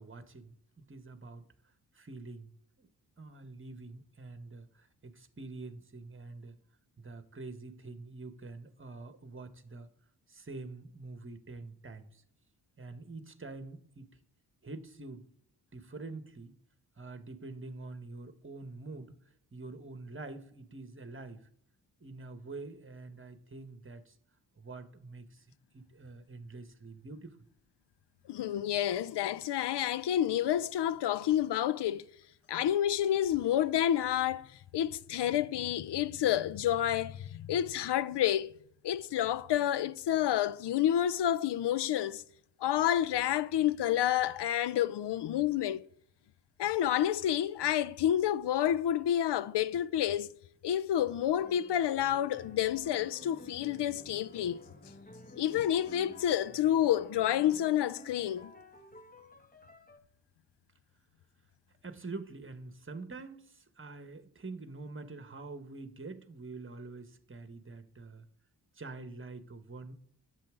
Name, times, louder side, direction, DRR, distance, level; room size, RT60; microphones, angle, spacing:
voice 1, 0.0-1.5 1.9-2.9 3.2-6.5 7.0-9.9 10.3-12.2 12.8-14.1 14.6-15.3 15.7-16.5 17.0-19.2 19.5-21.5 22.0-24.2 24.6-25.5 25.7-27.4 61.8-68.2 68.7-69.9, right 3 dB, 25° right, 1.5 m, -46 dB
voice 2, 28.3-32.1 32.5-38.5 38.8-42.2 42.6-45.8 46.6-50.3 50.6-54.6 55.4-58.5, left 11 dB, 65° left, 0.7 m, -29 dB
sound 1, 51.4-60.0, left 1 dB, 20° left, 1.4 m, -52 dB
10.0 x 8.1 x 3.8 m
supercardioid pair, 40°, 45 cm